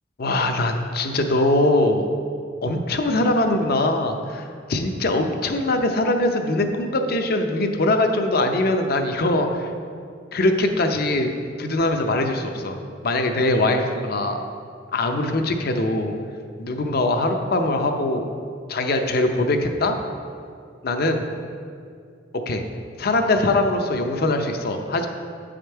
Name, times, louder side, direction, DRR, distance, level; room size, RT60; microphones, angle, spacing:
voice 1, 0.2-2.1 2.6-9.7 10.3-11.3 11.6-14.4 14.9-16.1 16.6-18.3 18.7-20.0 20.8-21.2 22.5-22.6 23.0-25.1, left 2 dB, 55° left, 5 dB, 0.6 m, -22 dB
8.5 x 5.1 x 4.5 m, 2.3 s
head